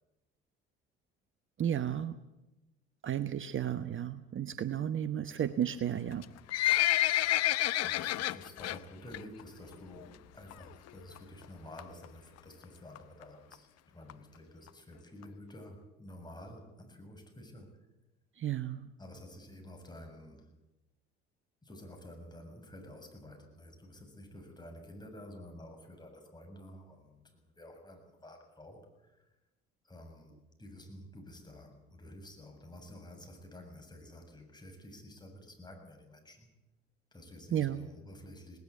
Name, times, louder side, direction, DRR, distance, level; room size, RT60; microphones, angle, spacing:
voice 1, 1.6-2.1 3.0-6.2 18.4-18.9 37.5-37.8, right 10 dB, 40° right, 13 dB, 1.0 m, -33 dB
Livestock farm animals working animals, 6.1-8.8 9.1-9.4 9.7-9.8 10.5-10.6 10.9-11.0 11.2-11.3 11.8-12.1 12.6-12.7 13.0-13.1 13.2-13.3 13.5-13.6 14.1-14.2 14.7-14.8 15.2-15.3, left 14 dB, 50° left, 0.8 m, -29 dB
voice 2, 7.8-17.7 19.0-20.5 21.6-29.1 29.8-36.5 37.1-38.6, left 1 dB, 15° left, 3 dB, 7.3 m, -51 dB
19.0 x 19.0 x 8.4 m, 0.99 s
hypercardioid pair, 60°, 32 cm